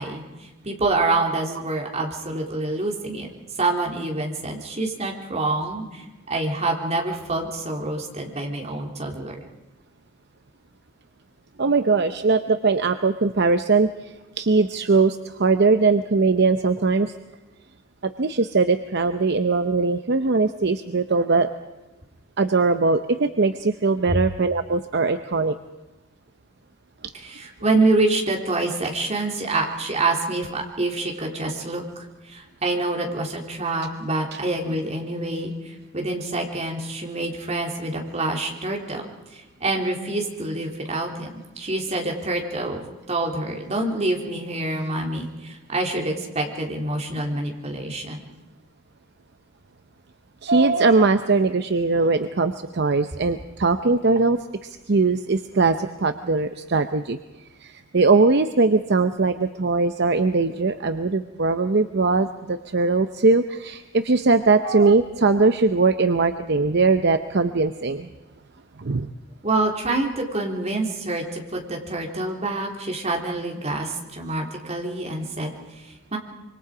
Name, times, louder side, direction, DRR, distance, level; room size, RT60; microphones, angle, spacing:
voice 1, 0.0-3.3 3.6-9.4 24.1-24.2 27.1-39.0 39.3-41.3 41.6-42.8 43.1-48.2 69.4-76.2, right 2 dB, 35° right, 0 dB, 3.4 m, -26 dB
voice 2, 11.6-13.9 14.4-17.1 18.0-21.5 22.4-25.6 50.4-54.4 54.9-57.2 57.6-68.1 68.8-69.1, right 3 dB, 55° right, 9 dB, 0.7 m, -20 dB
25.5 x 24.5 x 5.0 m, 1.1 s
head